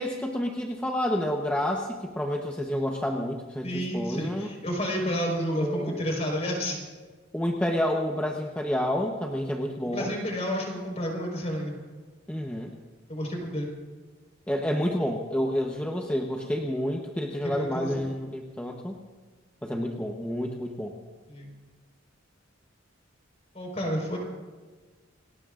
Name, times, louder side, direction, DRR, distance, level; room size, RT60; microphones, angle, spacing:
voice 1, 0.0-4.5 5.6-6.0 7.3-10.1 12.3-12.7 14.5-19.0 19.6-20.9, equal, 5° left, 0 dB, 1.0 m, -29 dB
voice 2, 3.6-6.8 9.9-11.7 13.1-13.7 17.4-18.0 21.3-21.5 23.5-24.2, equal, 35° left, 0 dB, 4.7 m, -30 dB
28.5 x 19.5 x 2.5 m, 1.3 s
head